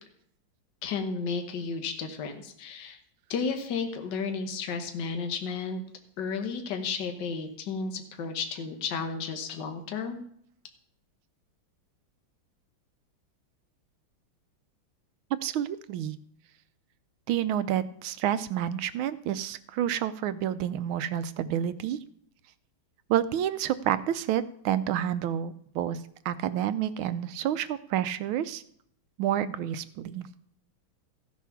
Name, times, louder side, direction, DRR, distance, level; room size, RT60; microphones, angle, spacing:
voice 1, 0.8-3.0 3.3-5.8 6.2-10.2, left 5 dB, 60° left, 5 dB, 1.7 m, -33 dB
voice 2, 15.3-16.2 17.3-22.0 23.1-26.0 26.2-28.6 29.2-30.3, right 10 dB, 80° right, 14 dB, 1.4 m, -29 dB
14.5 x 7.1 x 5.8 m, 0.67 s
omnidirectional pair, 2.3 m